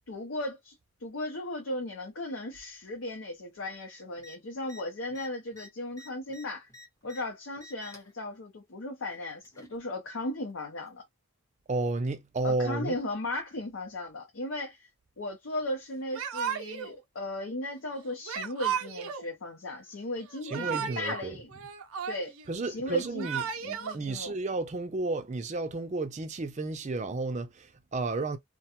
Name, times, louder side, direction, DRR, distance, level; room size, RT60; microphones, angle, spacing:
voice 1, 0.1-0.7 1.0-6.7 7.0-11.0 12.4-14.9 15.2-21.5 22.1-22.3 22.7-24.4, left 1 dB, 70° left, 0.6 m, -36 dB
sound 1, 4.2-4.4 4.6-4.8 5.1-7.2 7.6-8.1 9.1-9.8 10.8-10.9, left 2 dB, 15° left, 0.6 m, -51 dB
voice 2, 11.7-13.0 20.4-21.4 22.5-28.4, right 3 dB, 35° right, 0.4 m, -32 dB
Yell / Crying sobbing, 16.1-16.9 18.3-19.2 20.3-21.2 21.5-22.5 23.0-23.9, right 7 dB, 85° right, 0.5 m, -34 dB
2.3 x 2.2 x 2.8 m
head